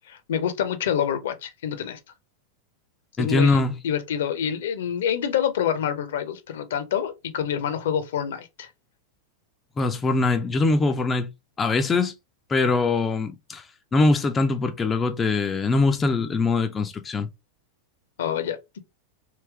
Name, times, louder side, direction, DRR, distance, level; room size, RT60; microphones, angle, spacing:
voice 1, 0.3-2.0 3.2-8.7 18.2-18.8, left 9 dB, 60° left, 0.6 m, -27 dB
voice 2, 3.2-3.8 9.8-11.3 11.6-12.1 12.5-17.3, left 3 dB, 20° left, 0.4 m, -22 dB
3.2 x 2.9 x 3.3 m
figure-of-eight pair, 90°, 0 cm